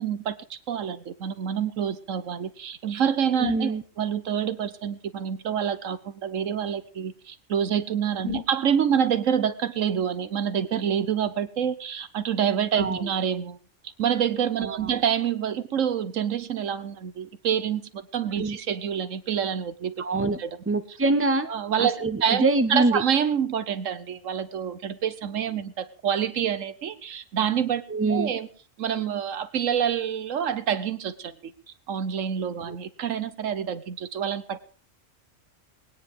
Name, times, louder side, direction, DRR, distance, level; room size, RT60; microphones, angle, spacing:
voice 1, 0.0-13.6 14.0-20.1 20.4-20.5 21.4-27.8 28.1-28.5 28.8-31.5 31.9-34.6, right 8 dB, 75° right, 13 dB, 1.3 m, -27 dB
voice 2, 3.4-3.8 8.2-8.4 12.8-13.1 14.6-14.9 18.4-18.6 20.0-20.4 20.7-21.5 21.8-23.0 27.9-28.3 32.7-32.8, right 2 dB, 10° right, 9 dB, 0.9 m, -25 dB
20.5 x 9.7 x 5.1 m, 0.41 s
omnidirectional pair, 1.3 m